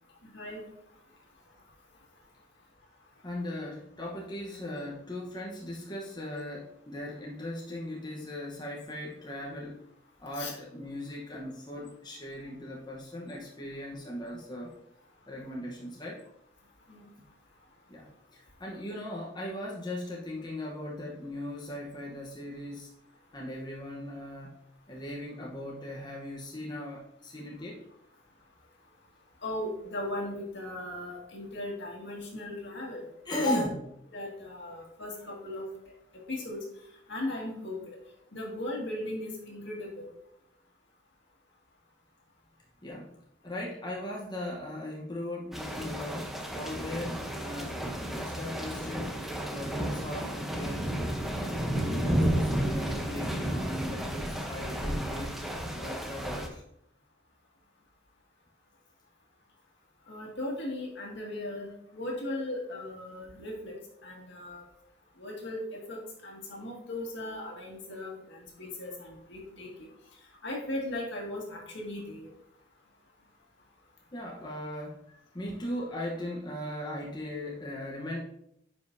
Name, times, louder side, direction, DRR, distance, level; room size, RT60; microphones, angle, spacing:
voice 1, 0.2-0.6 10.4-10.5 16.9-17.0 29.4-33.0 33.4-33.7 34.1-35.7 36.3-36.6 37.1-38.0 38.3-40.1 60.1-63.7 64.0-64.6 65.2-69.9 70.4-72.3, left 1 dB, 65° left, -1 dB, 2.0 m, -37 dB
voice 2, 3.2-9.8 10.2-14.7 15.3-16.2 17.9-22.9 23.3-24.5 24.9-27.8 33.2-33.7 42.8-43.1 43.4-47.8 48.2-49.1 49.4-50.9 51.2-55.4 55.7-56.6 74.1-78.2, left 1 dB, 20° left, -3 dB, 1.0 m, -38 dB
sound 1, 45.5-56.5, right 1 dB, ahead, 0.8 m, -32 dB
9.6 x 5.3 x 2.7 m, 0.76 s
head